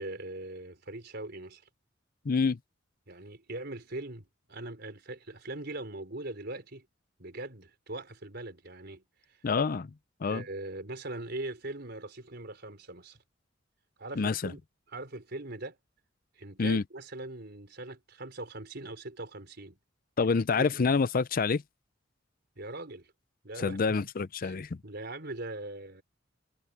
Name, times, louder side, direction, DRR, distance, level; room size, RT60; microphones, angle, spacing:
voice 1, 0.0-1.6 3.1-6.9 7.2-9.0 9.3-9.4 10.2-13.2 14.0-14.6 14.9-15.8 16.4-19.8 20.2-20.9 22.6-23.1 23.4-23.8 24.4-26.0, right 2 dB, 55° right, 4.6 m, -41 dB
voice 2, 2.3-2.6 9.4-9.9 10.2-10.4 14.2-14.3 16.6-16.8 20.2-21.6 23.6-24.7, left 4 dB, 45° left, 0.5 m, -27 dB
head